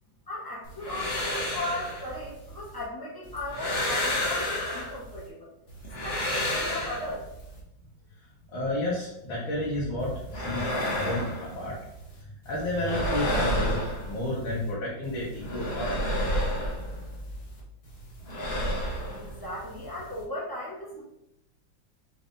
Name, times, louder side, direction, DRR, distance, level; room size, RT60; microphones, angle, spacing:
voice 1, 0.3-5.5 6.0-7.2 19.2-21.0, left 1 dB, 20° left, -5 dB, 0.7 m, -36 dB
sound 1, 0.6-2.8 3.2-5.3 5.7-7.6 10.0-12.2 12.4-14.7 15.0-17.6 17.8-20.2, left 1 dB, 40° left, 1.0 m, -31 dB
voice 2, 8.5-11.8 12.2-16.4, left 1 dB, 85° left, -7 dB, 1.9 m, -31 dB
5.6 x 3.6 x 2.6 m, 0.87 s
omnidirectional pair, 2.1 m